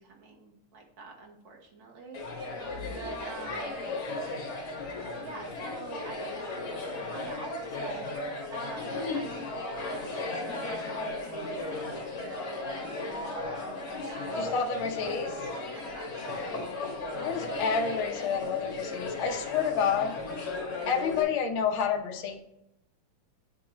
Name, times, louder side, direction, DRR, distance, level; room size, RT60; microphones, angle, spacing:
voice 1, 0.0-4.0 5.2-9.5 9.8-14.7 15.7-16.7 19.2-19.4, right 3 dB, 55° right, -1 dB, 1.4 m, -46 dB
sound 1, 2.1-21.2, left 2 dB, 50° left, 2.1 m, -36 dB
voice 2, 2.7-3.0 4.8-5.2 14.3-15.3 17.2-20.6 20.9-22.4, left 6 dB, 70° left, 3 dB, 1.2 m, -30 dB
9.7 x 3.7 x 3.0 m, 0.86 s
omnidirectional pair, 3.4 m